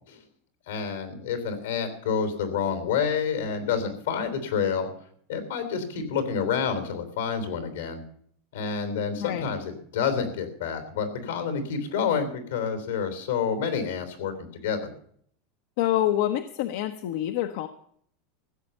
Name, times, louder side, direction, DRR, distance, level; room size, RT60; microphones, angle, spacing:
voice 1, 0.7-4.9 5.3-8.0 8.5-14.9, left 6 dB, 90° left, 8 dB, 3.4 m, -28 dB
voice 2, 9.2-9.5 15.8-17.7, left 12 dB, 70° left, 8 dB, 0.9 m, -26 dB
15.5 x 7.1 x 8.9 m, 0.63 s
supercardioid pair, 130°, 0 cm